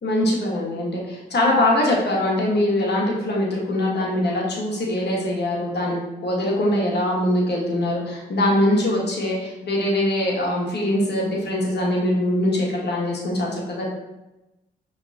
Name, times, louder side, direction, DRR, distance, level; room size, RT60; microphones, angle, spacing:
voice 1, 0.0-13.9, left 1 dB, 55° left, -2 dB, 1.4 m, -22 dB
5.1 x 3.2 x 2.8 m, 1.0 s
hypercardioid pair, 40°, 21 cm